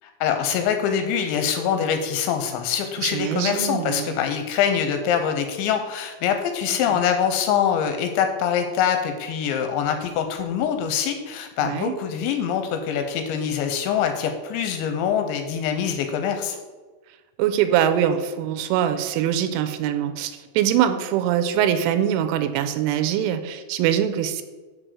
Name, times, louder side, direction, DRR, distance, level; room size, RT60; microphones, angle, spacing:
voice 1, 0.2-16.6, left 8 dB, 80° left, 6 dB, 2.8 m, -24 dB
voice 2, 3.0-4.1 6.9-7.0 11.6-11.9 17.4-24.4, right 10 dB, 90° right, 10 dB, 3.1 m, -23 dB
6.2 x 6.1 x 6.6 m, 1.3 s
omnidirectional pair, 5.5 m